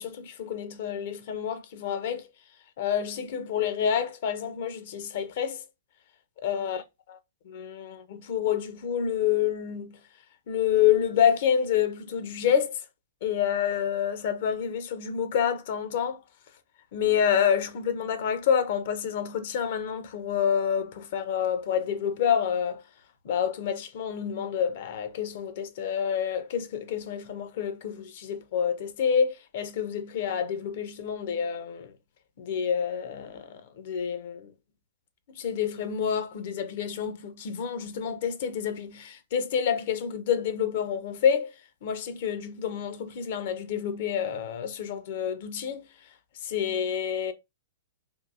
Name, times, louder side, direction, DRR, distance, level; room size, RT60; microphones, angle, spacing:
voice 1, 0.0-2.3 2.8-5.6 6.4-6.8 7.4-10.0 10.5-12.8 13.2-16.2 16.9-22.8 23.2-31.9 32.4-34.5 35.4-41.5 41.8-45.9 46.4-47.3, left 8 dB, 55° left, 0.7 m, -28 dB
3.7 x 2.6 x 2.4 m
hypercardioid pair, 115°, 0 cm